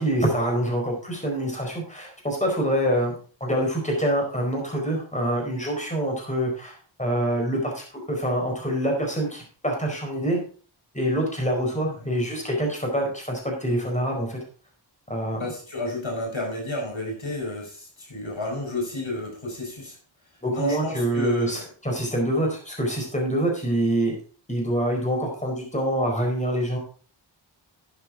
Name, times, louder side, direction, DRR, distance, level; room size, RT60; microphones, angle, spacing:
voice 1, 0.0-3.1 3.4-10.4 10.9-14.4 15.1-15.5 20.4-24.2 24.5-26.8, right 1 dB, 15° left, 0 dB, 4.6 m, -26 dB
voice 2, 15.3-20.0 20.5-21.6, left 1 dB, 80° left, 0 dB, 5.0 m, -30 dB
12.0 x 9.0 x 3.7 m, 0.40 s
wide cardioid pair, 70°, 46 cm